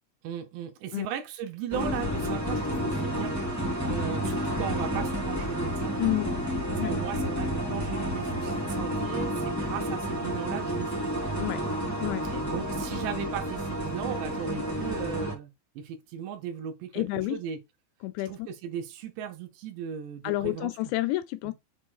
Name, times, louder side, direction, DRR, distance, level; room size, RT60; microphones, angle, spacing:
voice 1, 0.2-3.4 3.8-6.0 6.7-11.0 12.3-15.5 15.8-17.6 18.3-20.7, right 8 dB, 75° right, 3.0 m, -37 dB
sound 1, 1.7-15.3, equal, 15° right, 0.5 m, -30 dB
voice 2, 6.0-6.3 6.8-6.9 11.4-11.6 12.0-12.3 16.9-17.4 18.0-18.5 20.2-21.5, left 17 dB, 85° left, 2.7 m, -29 dB
7.5 x 2.9 x 4.7 m
omnidirectional pair, 5.3 m